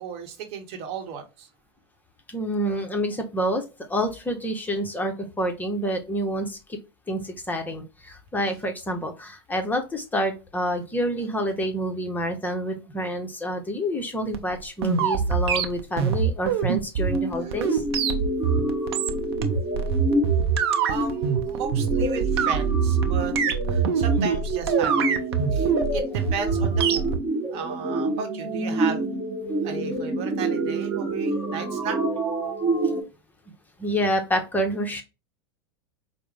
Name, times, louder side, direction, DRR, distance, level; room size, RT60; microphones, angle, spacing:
voice 1, 0.0-1.5 17.2-17.6 20.9-25.2 25.5-27.1 27.5-29.1 29.6-32.0, right 6 dB, 50° right, 5 dB, 1.0 m, -35 dB
voice 2, 2.3-3.6 3.9-6.8 7.1-17.8 33.8-35.0, equal, 10° left, 4 dB, 0.8 m, -28 dB
sound 1, 14.3-27.2, right 6 dB, 65° right, 0.6 m, -24 dB
sound 2, 17.0-33.0, right 2 dB, 25° right, 1.0 m, -28 dB
4.7 x 2.1 x 3.2 m, 0.28 s
hypercardioid pair, 90°, 14 cm